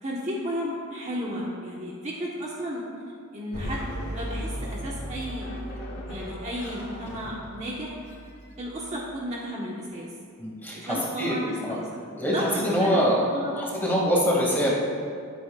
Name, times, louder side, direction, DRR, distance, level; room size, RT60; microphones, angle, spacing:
voice 1, 0.0-2.8 3.3-5.5 6.1-8.0 8.6-10.1 10.7-13.9, equal, 30° right, -4 dB, 1.3 m, -33 dB
sound 1, 3.5-9.0, equal, 60° left, 2.9 m, -36 dB
voice 2, 10.4-11.8 12.1-13.2 13.5-14.7, equal, 10° left, -5 dB, 2.4 m, -24 dB
20.0 x 8.3 x 2.5 m, 2.2 s
head